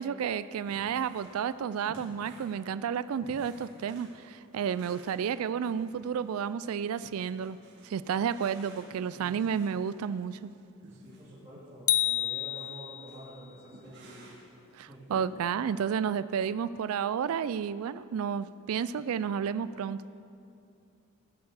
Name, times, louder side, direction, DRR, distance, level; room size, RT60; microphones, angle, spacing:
voice 1, 0.0-7.6 7.8-10.5 14.7-20.0, right 7 dB, 80° right, 14 dB, 0.3 m, -31 dB
sound 1, 0.7-1.5 1.7-6.4 7.0-9.9 10.8-11.3 11.7-11.8 12.6-12.8 13.1-13.2 13.7-14.6 15.1-15.3, right 1 dB, 55° right, 2.4 m, -53 dB
voice 2, 9.1-9.5 10.9-14.3 14.9-15.1, equal, 15° right, -12 dB, 2.8 m, -48 dB
sound 2, 11.9-13.3, left 13 dB, 80° left, 0.4 m, -29 dB
19.0 x 6.7 x 7.0 m, 2.5 s
head